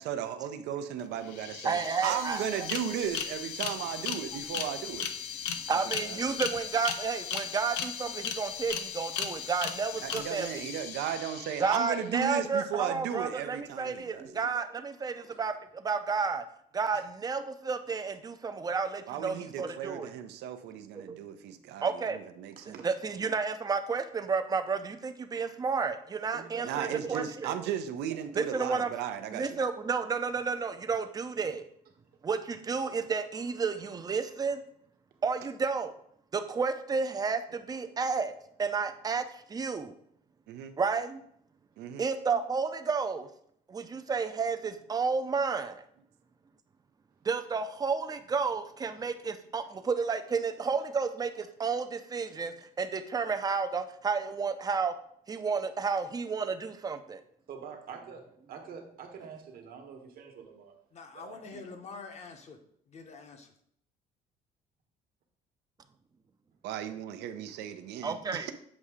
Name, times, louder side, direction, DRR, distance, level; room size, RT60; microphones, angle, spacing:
voice 1, 0.0-5.1 6.0-6.2 10.0-14.3 19.1-22.8 26.6-29.6 40.5-40.7 41.8-42.0 66.6-68.5, right 9 dB, 80° right, 9 dB, 0.6 m, -36 dB
sound 1, 1.0-1.1 1.3-12.1, left 8 dB, 85° left, 0.6 m, -37 dB
voice 2, 1.6-2.7 5.7-10.6 11.6-16.4 16.7-20.1 21.1-21.2 21.8-22.2 22.8-27.6 28.3-28.9 29.3-31.6 32.2-34.6 35.2-35.9 36.3-38.3 38.6-39.9 40.8-41.2 42.0-43.3 43.7-45.8 47.2-54.9 55.3-57.2 68.0-68.5, right 5 dB, 20° right, 8 dB, 0.5 m, -31 dB
voice 3, 26.3-27.2 57.5-60.7 61.1-61.6, right 6 dB, 60° right, 3 dB, 1.1 m, -46 dB
voice 4, 60.9-62.6 62.9-63.5, left 4 dB, 40° left, 5 dB, 0.9 m, -46 dB
7.2 x 2.7 x 4.8 m, 0.68 s
cardioid pair, 110°, 17 cm